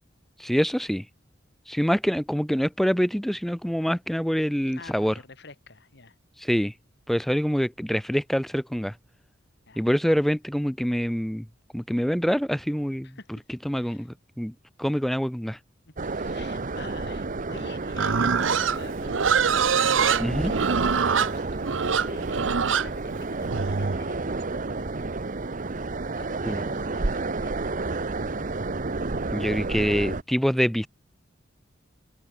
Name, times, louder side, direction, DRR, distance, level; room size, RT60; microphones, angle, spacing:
voice 1, 0.4-1.1 1.7-5.1 6.4-6.7 7.1-8.9 9.8-11.5 11.7-13.2 13.5-14.5 14.8-15.6 20.2-20.5 26.4-26.7 29.3-30.9, equal, ahead, 0.5 m, -25 dB
voice 2, 4.7-6.1 9.7-9.8 13.0-13.4 13.7-14.1 15.9-19.6 19.9-20.1 20.4-20.7 21.3-25.2 25.5-25.8 26.2-28.6, left 3 dB, 65° left, 4.1 m, -48 dB
sound 1, 16.0-30.2, right 3 dB, 45° right, 1.0 m, -30 dB
Livestock farm animals working animals, 17.9-24.0, right 6 dB, 90° right, 0.8 m, -24 dB
open air
head